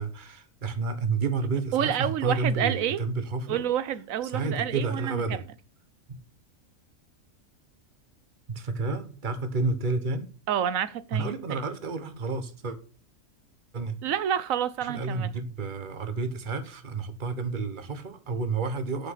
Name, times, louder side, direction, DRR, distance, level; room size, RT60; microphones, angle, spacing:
voice 1, 0.0-3.6 4.2-5.4 6.1-6.2 8.5-10.3 11.1-12.8 13.7-14.0 14.8-19.1, right 4 dB, 40° right, 1.3 m, -30 dB
voice 2, 1.7-3.0 3.5-5.4 10.5-11.6 14.0-15.3, right 10 dB, 85° right, 1.2 m, -28 dB
7.3 x 6.7 x 7.9 m
omnidirectional pair, 1.4 m